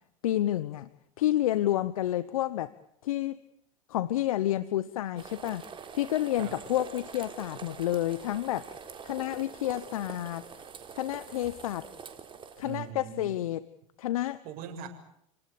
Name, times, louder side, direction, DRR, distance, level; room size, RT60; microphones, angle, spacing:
voice 1, 0.2-0.9 1.2-2.7 3.0-3.4 3.9-5.6 5.9-8.7 9.0-10.5 10.9-11.9 12.6-13.7 14.0-14.4, left 13 dB, 80° left, 16 dB, 1.0 m, -29 dB
sound 1, 5.2-12.8, right 6 dB, 30° right, 4.0 m, -45 dB
voice 2, 12.6-13.4 14.4-14.9, right 9 dB, 55° right, 5 dB, 7.0 m, -40 dB
29.5 x 19.0 x 8.5 m, 0.75 s
hypercardioid pair, 90°, 18 cm